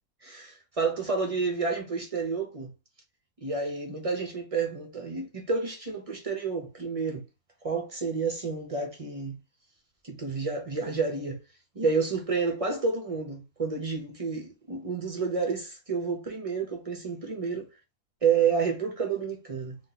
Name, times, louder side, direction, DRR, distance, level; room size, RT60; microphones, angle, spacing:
voice 1, 0.2-2.7 3.4-7.2 7.6-9.4 10.0-11.4 11.7-17.7 18.2-19.8, right 5 dB, 40° right, 0.5 m, -30 dB
2.8 x 2.3 x 3.8 m
omnidirectional pair, 1.6 m